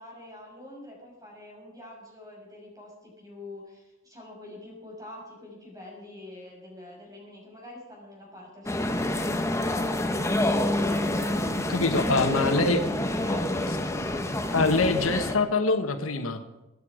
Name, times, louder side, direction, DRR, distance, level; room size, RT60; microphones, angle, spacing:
voice 1, 0.0-10.6 11.9-13.8, left 1 dB, 20° right, -2 dB, 6.0 m, -45 dB
sound 1, 8.7-15.4, left 1 dB, 15° left, 1.1 m, -27 dB
voice 2, 11.7-12.8 14.5-16.4, left 3 dB, 85° left, 7 dB, 1.3 m, -24 dB
24.0 x 9.6 x 5.0 m, 1.0 s
head